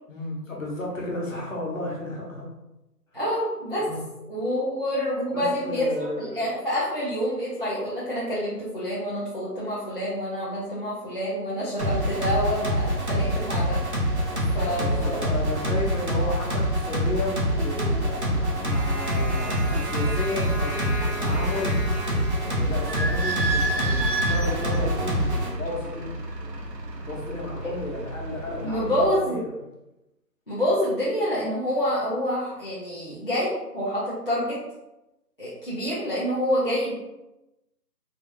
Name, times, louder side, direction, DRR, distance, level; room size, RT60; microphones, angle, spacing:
voice 1, 0.1-2.5 3.8-4.0 5.3-6.5 14.1-21.8 22.4-26.1 27.0-29.6, left 2 dB, 50° left, -3 dB, 1.1 m, -33 dB
voice 2, 3.1-3.9 4.3-5.9 6.2-13.8 14.5-15.2 28.6-29.5 30.5-34.6 35.4-36.9, equal, 35° left, -10 dB, 0.6 m, -27 dB
sound 1, 11.8-25.5, equal, 45° right, 0.6 m, -25 dB
Idling / Squeak, 22.7-29.1, right 2 dB, 80° right, 0.7 m, -31 dB
3.4 x 2.4 x 2.7 m, 0.96 s
figure-of-eight pair, 165°, 49 cm